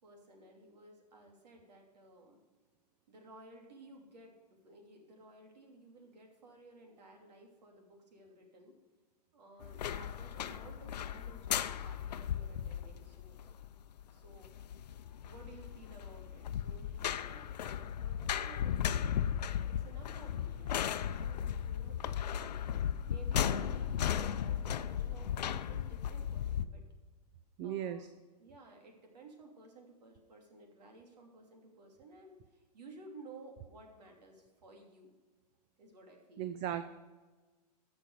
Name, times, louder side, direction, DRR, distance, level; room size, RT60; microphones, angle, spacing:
voice 1, 0.0-2.4 3.1-8.7 9.3-13.5 14.1-14.5 15.2-19.3 19.6-22.4 23.1-26.8 27.6-28.1 28.4-35.1 35.8-36.5, right 2 dB, 75° right, 2 dB, 2.9 m, -56 dB
sound 1, 9.6-26.7, left 9 dB, 80° left, 0.6 m, -36 dB
voice 2, 27.6-28.1 36.4-36.8, right 10 dB, 30° right, 10 dB, 0.5 m, -36 dB
13.0 x 6.3 x 4.9 m, 1.3 s
hypercardioid pair, 135°, 21 cm